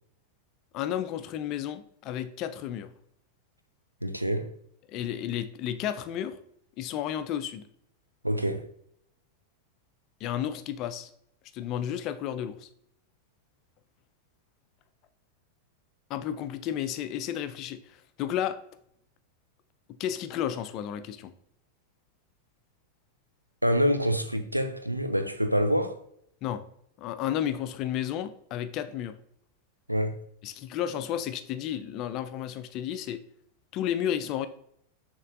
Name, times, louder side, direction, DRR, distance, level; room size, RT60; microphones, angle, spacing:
voice 1, 0.7-2.9 4.9-6.4 6.8-7.6 10.2-11.1 11.5-12.7 16.1-18.6 20.0-21.3 26.4-26.6 27.0-29.1 30.4-33.2 33.7-34.5, left 10 dB, 40° left, 0.4 m, -32 dB
voice 2, 4.0-4.6 8.2-8.7 23.6-26.0 29.9-30.2, equal, 90° right, 0.4 m, -26 dB
6.5 x 3.0 x 2.5 m
figure-of-eight pair, 90°, 0 cm